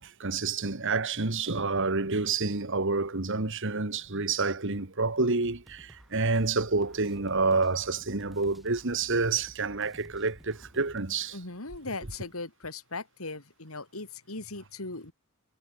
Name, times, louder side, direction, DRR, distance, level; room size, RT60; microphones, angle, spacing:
voice 1, 0.0-11.4, right 3 dB, 60° right, 2.1 m, -28 dB
sound 1, 5.4-11.0, equal, ahead, 8.0 m, -53 dB
voice 2, 11.3-15.1, left 3 dB, 80° left, 4.2 m, -39 dB
head